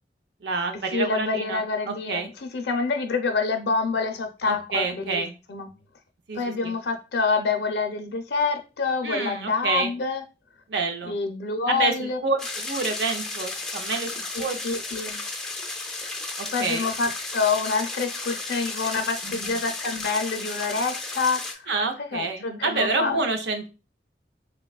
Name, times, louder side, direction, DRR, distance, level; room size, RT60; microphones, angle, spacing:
voice 1, 0.4-2.3 4.5-5.3 6.3-6.7 9.0-9.9 10.7-11.1 11.7-14.1 14.4-14.6 16.4-16.9 19.2-19.6 21.7-23.7, right 3 dB, 85° right, 0.6 m, -28 dB
voice 2, 0.9-5.2 5.5-5.7 6.3-10.2 11.0-12.2 14.3-15.2 16.5-21.7 22.0-23.2, left 4 dB, 70° left, 0.4 m, -27 dB
sound 1, 12.4-21.5, left 3 dB, 5° left, 0.3 m, -33 dB
3.4 x 2.3 x 2.2 m
head